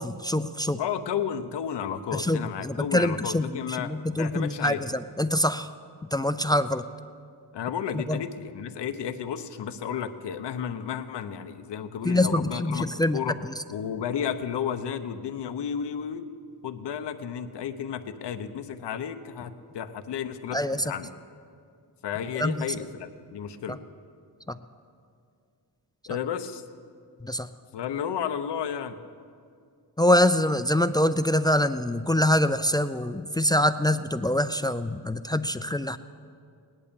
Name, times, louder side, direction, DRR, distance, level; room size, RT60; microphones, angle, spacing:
voice 1, 0.0-0.8 2.1-5.7 6.1-6.8 7.9-8.2 12.0-13.2 20.5-20.8 22.4-22.7 23.7-23.8 27.2-27.5 30.0-36.0, left 1 dB, 10° left, 12 dB, 0.3 m, -25 dB
voice 2, 0.8-4.8 7.5-12.9 13.1-13.4 13.7-16.2 16.6-21.1 22.0-23.8 26.1-26.6 27.7-29.0, left 8 dB, 90° left, 9 dB, 0.9 m, -32 dB
18.0 x 11.0 x 6.9 m, 2.3 s
wide cardioid pair, 110°, 40 cm